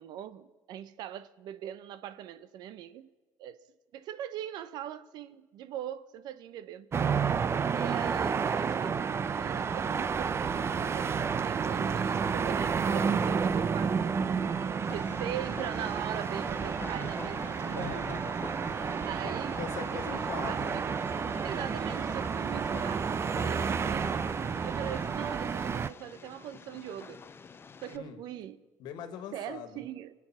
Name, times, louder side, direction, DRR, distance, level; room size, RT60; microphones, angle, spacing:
voice 1, 0.0-3.1 3.4-3.6 3.9-6.9 7.7-14.0 14.9-18.0 19.1-19.6 19.9-20.8 21.4-24.1 24.6-27.2 27.8-28.6 29.3-30.1, right 11 dB, 70° right, 0.7 m, -41 dB
sound 1, 6.9-25.9, right 6 dB, 35° right, 0.6 m, -30 dB
Train, 14.8-28.0, left 5 dB, 30° left, 0.6 m, -47 dB
voice 2, 17.6-18.3 18.8-20.9 27.9-28.2 28.8-29.8, left 8 dB, 75° left, 1.6 m, -42 dB
24.0 x 8.4 x 6.0 m
supercardioid pair, 85°, 7 cm